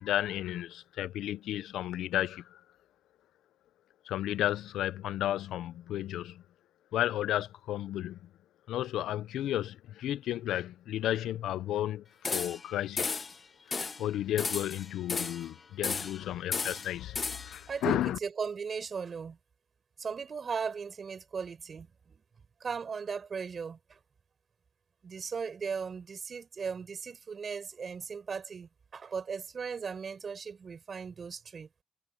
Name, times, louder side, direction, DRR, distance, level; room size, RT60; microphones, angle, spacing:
voice 1, 0.0-2.4 4.1-6.4 6.9-8.2 8.7-13.2 14.0-17.2 17.4-18.2, left 12 dB, 80° left, 0.5 m, -33 dB
sound 1, 12.2-12.7 13.0-13.4 13.7-14.0 14.4-15.5 15.8-16.2 16.5-17.6, left 4 dB, 35° left, 0.9 m, -34 dB
voice 2, 17.7-19.4 20.0-22.2 22.6-24.0 25.0-31.7, right 6 dB, 45° right, 5.9 m, -37 dB
cardioid pair, 90°, 0 cm